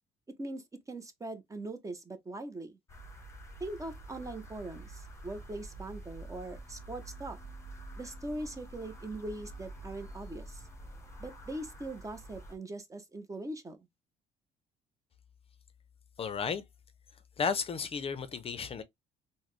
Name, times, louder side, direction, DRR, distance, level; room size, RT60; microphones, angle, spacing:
voice 1, 0.3-2.8 3.6-7.4 8.0-10.6 11.2-13.8, right 2 dB, 20° right, 0.6 m, -41 dB
sound 1, 2.9-12.5, right 2 dB, 15° left, 0.9 m, -47 dB
voice 2, 16.2-16.6 17.4-18.8, left 6 dB, 35° left, 0.5 m, -33 dB
3.8 x 2.0 x 3.1 m
cardioid pair, 110°, 17 cm